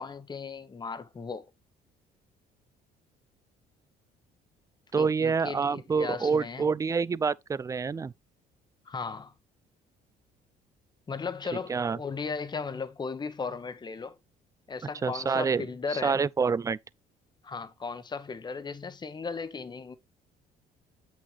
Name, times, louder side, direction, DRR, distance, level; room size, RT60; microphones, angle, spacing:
voice 1, 0.0-1.5 5.0-6.7 8.8-9.3 11.1-14.2 14.7-16.2 17.4-20.0, left 5 dB, 25° left, 1.1 m, -36 dB
voice 2, 4.9-8.1 11.7-12.0 15.0-15.6 16.0-16.8, right 5 dB, 20° right, 0.4 m, -27 dB
8.0 x 6.2 x 3.4 m
cardioid pair, 110°, 17 cm